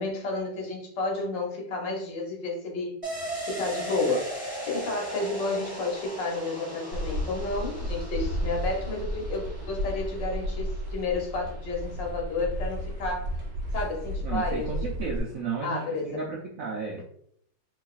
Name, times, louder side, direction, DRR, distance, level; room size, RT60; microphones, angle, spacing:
voice 1, 0.0-2.9 3.4-4.3 4.6-13.3 13.7-14.8 15.6-16.2, left 3 dB, 70° left, 0 dB, 1.5 m, -31 dB
sound 1, 3.0-12.4 12.7-12.8, right 1 dB, 20° right, 1.5 m, -39 dB
sound 2, 6.9-15.2, equal, 55° right, 1.0 m, -33 dB
voice 2, 14.2-17.1, right 5 dB, 80° right, -2 dB, 0.7 m, -33 dB
4.0 x 3.1 x 2.4 m, 0.68 s
omnidirectional pair, 2.1 m